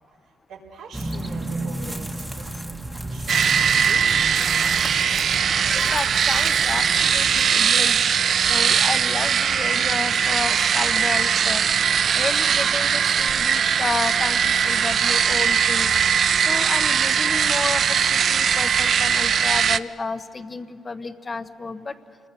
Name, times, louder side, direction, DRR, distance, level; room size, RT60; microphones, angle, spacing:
voice 1, 0.5-2.8 3.1-4.9, right 4 dB, 85° right, -3 dB, 4.1 m, -44 dB
sound 1, 0.9-7.5, right 1 dB, 5° right, 1.4 m, -33 dB
sound 2, 3.3-19.8, right 7 dB, 55° right, 0.5 m, -20 dB
voice 2, 5.7-8.0 8.4-11.6 12.1-15.9 16.4-21.9, left 3 dB, 30° left, 11 dB, 1.0 m, -31 dB
28.0 x 21.0 x 6.8 m, 2.3 s
cardioid pair, 90°, 0 cm